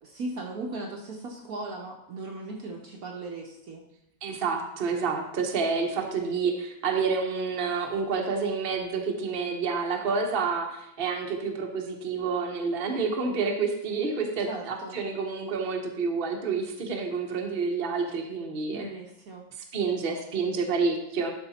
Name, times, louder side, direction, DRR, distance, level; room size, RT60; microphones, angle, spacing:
voice 1, 0.0-3.8 14.4-15.0 18.7-19.5, right 2 dB, 55° right, 1 dB, 1.2 m, -38 dB
voice 2, 4.2-18.8 19.7-21.3, right 5 dB, 35° right, 2 dB, 1.0 m, -29 dB
12.0 x 4.9 x 4.2 m, 0.80 s
omnidirectional pair, 2.1 m